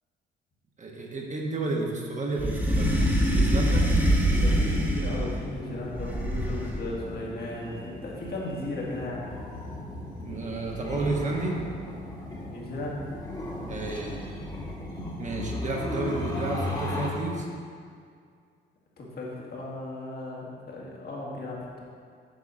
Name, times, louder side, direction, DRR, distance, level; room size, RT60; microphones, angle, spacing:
voice 1, 0.8-3.0 3.3-3.8 10.2-11.6 13.7-14.2 15.2-17.4, right 2 dB, 35° right, -1 dB, 1.2 m, -31 dB
sound 1, 2.4-5.4 6.0-6.9, equal, 10° right, 1.4 m, -24 dB
voice 2, 4.0-9.3 12.5-13.0 19.0-21.8, left 2 dB, 50° left, -3 dB, 1.9 m, -36 dB
sound 2, 4.1-17.1, left 1 dB, 20° left, 1.6 m, -37 dB
8.1 x 3.7 x 6.2 m, 2.2 s
cardioid pair, 90°, 20 cm